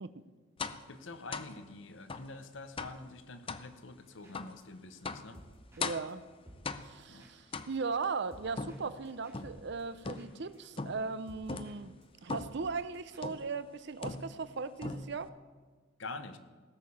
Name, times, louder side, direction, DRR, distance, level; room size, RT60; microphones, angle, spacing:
sound 1, 0.6-0.9 1.3-1.6 2.1-2.3 2.8-3.0 3.5-3.7 4.3-4.6 5.0-5.3 5.8-6.2 6.6-7.1 7.5-8.0 8.6-9.6 10.0-10.4 10.8-11.1 11.5-11.8 12.3-12.6 13.2-13.5 14.0-14.5 14.8-15.3, left 4 dB, 30° left, 0.5 m, -40 dB
voice 1, 0.9-5.4 7.1-7.3 16.0-16.4, left 3 dB, 70° left, 9 dB, 0.9 m, -46 dB
sound 2, 4.1-4.6 5.0-11.8 12.0-12.1 12.3-13.2, equal, 15° right, 2.4 m, -57 dB
voice 2, 5.8-6.2 6.8-11.9 12.2-15.3, right 4 dB, 60° right, 14 dB, 0.6 m, -38 dB
17.0 x 6.7 x 7.1 m, 1.4 s
head